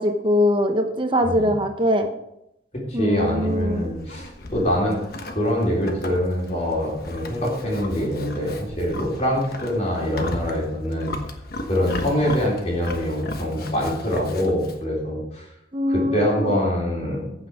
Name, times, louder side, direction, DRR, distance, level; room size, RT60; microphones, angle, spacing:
voice 1, 0.0-2.1 2.9-3.9 15.7-16.5, left 1 dB, 25° right, 5 dB, 0.9 m, -22 dB
voice 2, 2.7-5.0 5.3-11.2 11.7-15.5 15.9-17.3, equal, 35° left, -4 dB, 3.9 m, -24 dB
Livestock farm animals working animals, 3.1-14.8, left 2 dB, 55° left, 1.2 m, -36 dB
14.5 x 6.2 x 4.9 m, 0.81 s
head